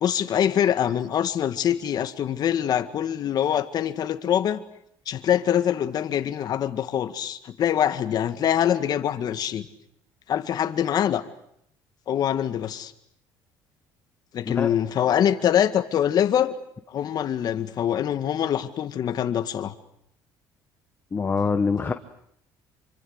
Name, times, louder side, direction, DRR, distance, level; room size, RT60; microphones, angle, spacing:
voice 1, 0.0-4.6 5.1-9.7 10.3-11.2 12.1-12.9 14.3-16.5 16.9-19.7, left 10 dB, 50° left, 9 dB, 1.8 m, -24 dB
voice 2, 21.1-21.9, left 5 dB, 25° left, 7 dB, 1.3 m, -24 dB
27.0 x 24.5 x 8.1 m, 0.73 s
cardioid pair, 120°, 9 cm